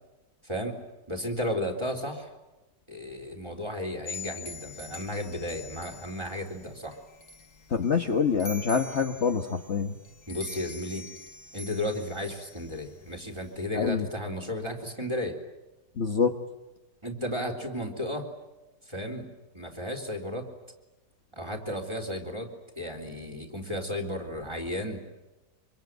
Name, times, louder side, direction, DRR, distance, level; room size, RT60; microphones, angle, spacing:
voice 1, 0.4-0.8 1.1-2.3 2.9-7.0 10.3-11.1 11.5-15.4 17.0-18.3 18.9-19.3 19.5-20.5 21.3-22.5 22.8-25.0, left 1 dB, 15° right, 2 dB, 3.7 m, -34 dB
sound 1, 4.1-13.6, left 3 dB, 65° left, 2.8 m, -45 dB
voice 2, 7.7-10.0 13.7-14.1 16.0-16.3, left 6 dB, 45° left, 4 dB, 1.4 m, -26 dB
26.0 x 24.5 x 9.2 m, 1.0 s
omnidirectional pair, 1.9 m